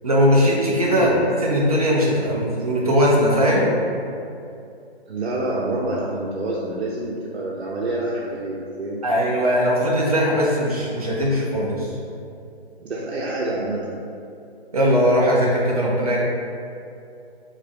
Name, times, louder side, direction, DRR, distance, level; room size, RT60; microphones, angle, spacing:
voice 1, 0.0-1.1 1.4-3.7 9.0-11.9 14.7-16.2, equal, 35° right, -4 dB, 0.8 m, -19 dB
voice 2, 0.8-1.2 5.1-9.0 12.8-13.9, right 2 dB, 90° right, -5 dB, 0.8 m, -27 dB
5.0 x 2.9 x 3.4 m, 2.5 s
hypercardioid pair, 175°, 32 cm